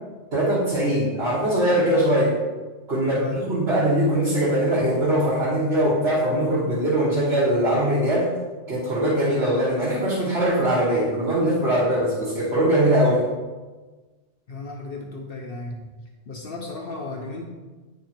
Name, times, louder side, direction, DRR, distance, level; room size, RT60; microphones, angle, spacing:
voice 1, 0.3-2.3 2.9-8.3 8.7-13.2, right 1 dB, 65° right, -8 dB, 1.8 m, -21 dB
voice 2, 3.1-3.4 14.5-15.9 16.3-17.4, left 3 dB, 60° left, 0 dB, 0.9 m, -34 dB
10.0 x 3.6 x 4.4 m, 1.3 s
omnidirectional pair, 1.2 m